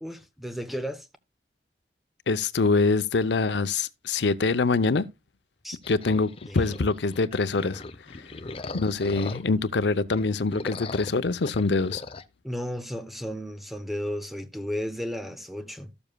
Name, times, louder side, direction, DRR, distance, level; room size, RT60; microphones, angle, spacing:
voice 1, 0.0-1.1 5.6-5.8 6.5-6.8 12.4-15.9, equal, ahead, 0.9 m, -34 dB
voice 2, 2.3-5.0 5.9-7.8 8.1-8.3 8.7-12.0, left 3 dB, 80° left, 0.7 m, -24 dB
sound 1, 5.8-9.7 10.1-12.3, left 3 dB, 35° left, 0.6 m, -40 dB
14.0 x 7.1 x 2.2 m
head